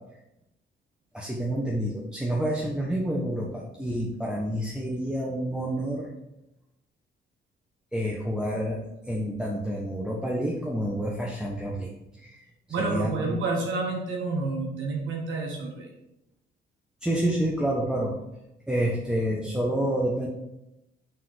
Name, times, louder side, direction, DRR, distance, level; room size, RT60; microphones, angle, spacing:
voice 1, 1.1-6.1 7.9-8.8 9.1-11.9 12.2-12.5 12.8-13.4 17.0-18.1 18.7-20.3, right 1 dB, 5° right, -4 dB, 1.1 m, -28 dB
voice 2, 12.7-15.9, right 3 dB, 75° right, 0 dB, 1.3 m, -29 dB
6.2 x 3.7 x 4.9 m, 0.89 s
cardioid pair, 90°, 20 cm